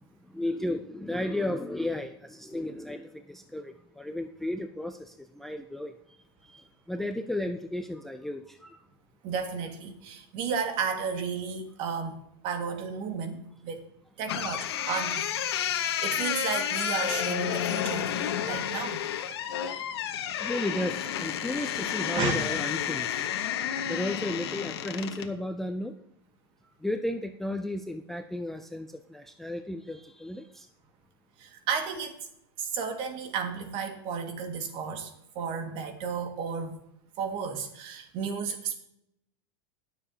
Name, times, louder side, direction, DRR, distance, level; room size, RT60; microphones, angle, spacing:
voice 1, 0.3-5.9 6.5-8.8 20.4-23.2 23.9-25.9 26.8-30.7, left 1 dB, ahead, 7 dB, 0.4 m, -34 dB
voice 2, 9.2-13.8 14.2-15.4 15.7-18.1 18.4-19.0 22.1-22.4 31.4-32.3 32.6-36.8 37.2-38.8, right 6 dB, 45° right, 5 dB, 1.8 m, -33 dB
sound 1, 14.3-25.3, left 9 dB, 85° left, 1.1 m, -31 dB
20.0 x 7.1 x 2.8 m, 0.78 s
supercardioid pair, 150°, 13 cm